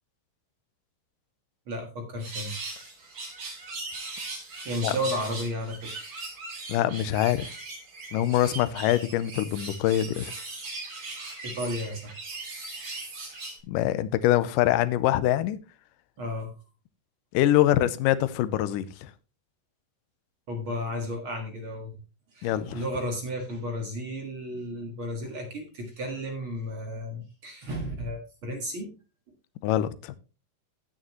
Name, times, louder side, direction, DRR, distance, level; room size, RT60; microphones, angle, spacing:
voice 1, 1.7-2.6 4.6-6.1 11.4-12.1 16.2-16.5 20.5-22.0 22.3-28.9, equal, 45° right, 2.0 m, -33 dB
sound 1, 2.2-13.6, right 3 dB, 70° right, 7.2 m, -39 dB
voice 2, 6.7-7.4 8.1-10.3 13.7-15.6 17.3-19.1 22.4-22.8 29.6-30.2, left 13 dB, 80° left, 2.3 m, -24 dB
16.5 x 6.5 x 3.0 m
omnidirectional pair, 3.9 m